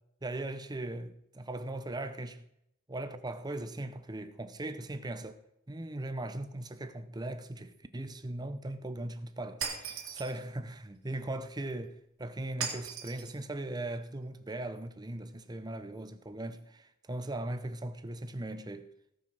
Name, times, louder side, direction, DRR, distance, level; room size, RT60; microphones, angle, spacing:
voice 1, 0.2-2.4 2.9-5.4 5.7-18.9, right 1 dB, 20° right, 0.7 m, -39 dB
Shatter, 9.6-10.4 12.6-13.3, right 6 dB, 80° right, 2.8 m, -37 dB
18.0 x 6.2 x 6.3 m
head